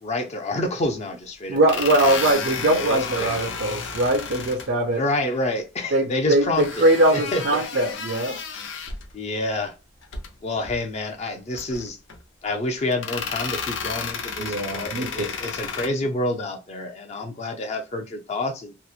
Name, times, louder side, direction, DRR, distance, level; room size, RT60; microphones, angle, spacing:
voice 1, 0.0-1.7 2.1-2.2 2.9-3.6 4.9-7.6 9.1-9.7 10.4-12.0 12.4-18.7, left 1 dB, 35° left, 0.4 m, -28 dB
sound 1, 0.8-0.9 1.6-4.7 6.6-9.1 10.0-10.3 10.6-10.8 11.5-12.2 12.9-15.9, left 5 dB, 90° left, 0.6 m, -32 dB
voice 2, 1.5-5.0 5.9-8.4 14.4-15.1, right 1 dB, 65° right, 0.5 m, -21 dB
2.8 x 2.0 x 2.3 m
head